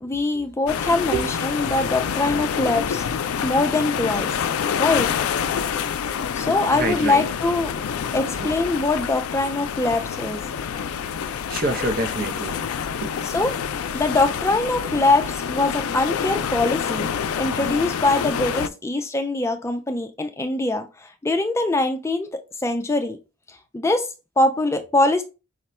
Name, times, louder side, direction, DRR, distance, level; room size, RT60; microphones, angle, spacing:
voice 1, 0.0-3.0 3.4-4.3 4.8-5.1 6.3-7.7 8.1-10.4 13.2-13.5 13.9-17.1 17.4-23.2 23.5-24.1 24.4-25.2, left 2 dB, 15° left, 0.3 m, -23 dB
sound 1, 0.7-18.7, left 7 dB, 85° left, 0.4 m, -27 dB
voice 2, 6.7-7.3 8.4-8.5 11.5-12.6 13.0-13.1, right 3 dB, 45° right, 0.6 m, -26 dB
4.9 x 2.2 x 4.2 m
head